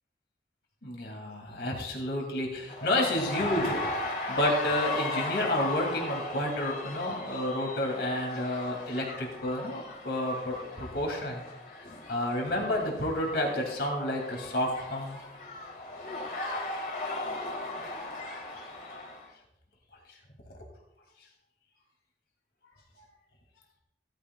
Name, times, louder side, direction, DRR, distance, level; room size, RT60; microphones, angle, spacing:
voice 1, 0.8-3.8 4.3-11.4 12.1-15.2, left 1 dB, 70° left, 0 dB, 2.8 m, -30 dB
sound 1, 2.7-19.3, left 2 dB, 50° left, 2.3 m, -37 dB
16.5 x 13.5 x 2.4 m, 0.83 s
head